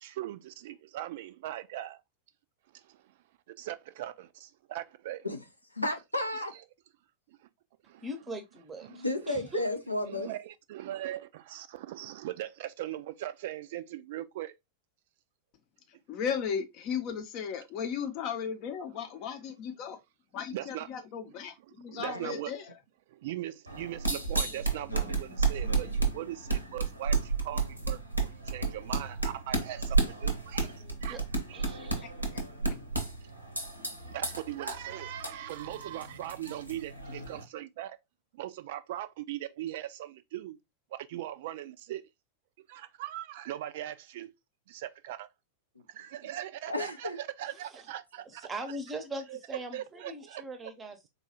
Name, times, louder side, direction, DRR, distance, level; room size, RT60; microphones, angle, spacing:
voice 1, 0.0-2.0 2.7-3.1 3.6-5.3 6.4-6.6 7.3-7.4 7.9-8.1 8.8-9.1 10.1-14.5 20.5-20.9 21.9-22.5 23.1-31.2 31.5-31.9 33.2-38.0 38.3-40.6 40.9-42.0 42.7-44.3 44.7-45.3 45.9-48.4 48.7-48.8 49.3-49.4 49.7-50.4, right 13 dB, 55° right, 0.3 m, -40 dB
voice 2, 5.8-6.5 8.9-10.3 22.0-22.4 46.7-47.2, left 1 dB, 85° left, 0.5 m, -33 dB
voice 3, 8.0-9.6 30.8-31.2 31.5-32.1 48.4-51.1, right 1 dB, 20° right, 0.7 m, -41 dB
voice 4, 16.1-20.0 20.3-22.6 32.3-32.4, left 7 dB, 40° left, 0.6 m, -35 dB
sound 1, 23.7-37.4, right 4 dB, 85° right, 0.7 m, -32 dB
3.9 x 2.3 x 2.8 m
figure-of-eight pair, 90°, 0 cm